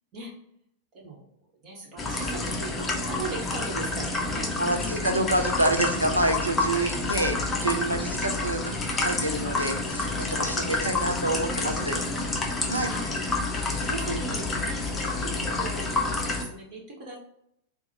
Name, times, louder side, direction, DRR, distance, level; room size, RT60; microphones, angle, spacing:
voice 1, 0.9-1.3 1.6-5.0 6.9-7.4 10.3-11.0 11.4-12.3 12.8-13.0 13.4-16.1 16.4-17.2, right 2 dB, 40° right, -2 dB, 1.1 m, -39 dB
sound 1, 2.0-16.4, left 3 dB, 15° left, 0.6 m, -29 dB
voice 2, 4.6-12.0 12.7-12.9, right 1 dB, 85° right, 3 dB, 0.5 m, -27 dB
3.9 x 2.1 x 2.8 m, 0.74 s
figure-of-eight pair, 90°, 0 cm